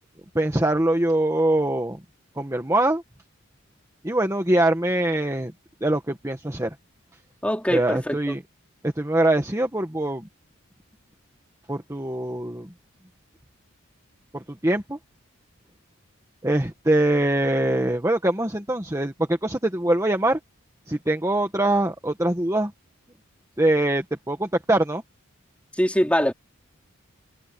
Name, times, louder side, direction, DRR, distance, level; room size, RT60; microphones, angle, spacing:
voice 1, 0.3-2.0 2.4-3.0 4.0-5.5 5.8-6.7 7.7-8.4 8.8-10.3 11.7-12.7 14.3-15.0 16.4-20.4 20.9-22.7 23.6-25.0, right 1 dB, 15° right, 1.5 m, -23 dB
voice 2, 7.4-8.4 25.8-26.3, equal, 5° left, 3.9 m, -23 dB
head